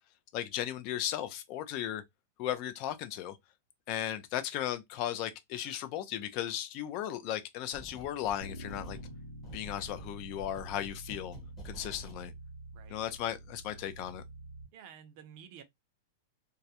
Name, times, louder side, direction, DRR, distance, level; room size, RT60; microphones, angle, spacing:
voice 1, 0.3-2.0 2.4-3.4 3.9-9.0 9.5-11.4 11.6-12.3 12.9-14.2, left 11 dB, 35° left, 0.4 m, -36 dB
sound 1, 7.7-8.4 8.7-12.2, equal, 15° left, 0.8 m, -50 dB
Bass guitar, 8.4-14.7, right 1 dB, 90° left, 0.8 m, -47 dB
voice 2, 14.7-15.6, right 8 dB, 40° right, 0.5 m, -51 dB
2.3 x 2.0 x 2.8 m
supercardioid pair, 165°, 0 cm